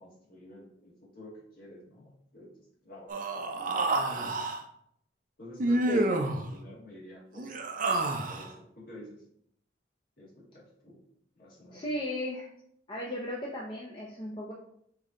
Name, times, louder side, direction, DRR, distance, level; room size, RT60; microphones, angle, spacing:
voice 1, 0.0-4.5 5.4-7.5 8.3-9.2 10.2-11.0 11.4-11.8, left 1 dB, 50° left, -4 dB, 1.7 m, -48 dB
Human voice, 3.1-4.6 5.6-6.4 7.4-8.5, right 2 dB, 45° right, 0.5 m, -29 dB
voice 2, 11.7-12.5 12.9-14.5, left 1 dB, 25° left, -4 dB, 0.5 m, -36 dB
5.1 x 2.8 x 3.7 m, 0.70 s
head